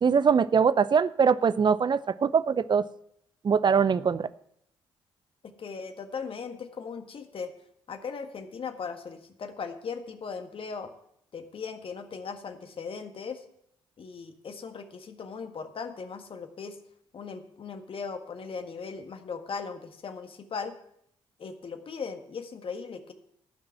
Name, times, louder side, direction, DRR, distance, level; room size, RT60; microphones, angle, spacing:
voice 1, 0.0-2.8 3.4-4.3, right 6 dB, 40° right, 17 dB, 0.6 m, -22 dB
voice 2, 5.4-7.5 7.9-10.9 11.3-13.4 14.0-16.8 17.1-20.8 21.4-23.1, left 5 dB, 50° left, 7 dB, 1.6 m, -38 dB
14.5 x 6.0 x 7.6 m, 0.72 s
hypercardioid pair, 45°, 12 cm